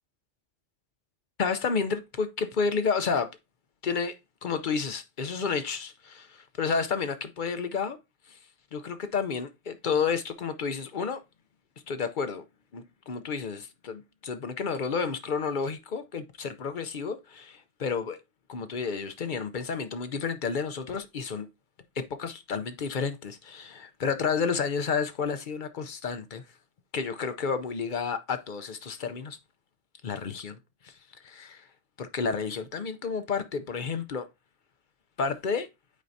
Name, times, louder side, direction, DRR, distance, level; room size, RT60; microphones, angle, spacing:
voice 1, 1.4-3.3 3.8-4.1 4.4-8.0 8.7-11.2 11.9-12.4 12.7-18.2 18.5-21.5 22.0-26.4 26.9-29.4 30.0-30.6 30.8-30.9 31.2-31.7 32.0-34.3 35.2-35.7, left 5 dB, 50° left, 0.7 m, -31 dB
8.2 x 4.5 x 2.7 m
omnidirectional pair, 1.2 m